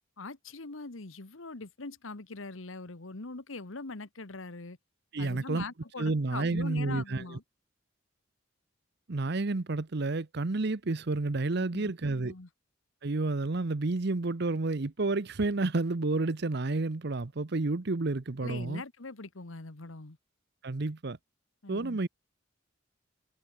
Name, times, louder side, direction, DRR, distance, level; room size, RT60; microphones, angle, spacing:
voice 1, 0.2-4.8 5.2-7.4 11.5-12.5 18.4-20.2 21.6-22.0, left 3 dB, 80° left, 1.5 m, -42 dB
voice 2, 5.1-5.6 6.0-7.4 9.1-12.3 13.0-18.8 20.6-21.2 21.7-22.1, right 3 dB, 55° right, 0.8 m, -30 dB
head